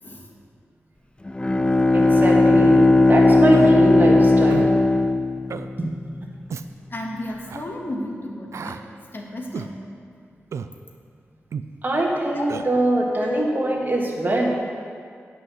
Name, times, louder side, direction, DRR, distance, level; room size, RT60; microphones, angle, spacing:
Bowed string instrument, 1.3-6.0, left 2 dB, 20° left, 0.4 m, -17 dB
voice 1, 1.9-4.7 5.8-5.9 6.2-6.3 11.8-14.5, right 2 dB, 40° right, -2 dB, 2.0 m, -23 dB
Human voice, 3.5-3.7 4.5-4.7 5.5-5.7 6.5-6.7 7.5-7.7 8.5-8.8 9.5-9.7 10.5-10.7 11.5-11.7 12.5-12.7, right 6 dB, 80° right, 0.4 m, -32 dB
voice 2, 6.9-8.8 9.1-9.8 12.3-12.5 13.2-13.4, left 1 dB, 45° left, 0 dB, 1.8 m, -31 dB
9.6 x 5.6 x 7.7 m, 2.1 s
cardioid pair, 60°, 5 cm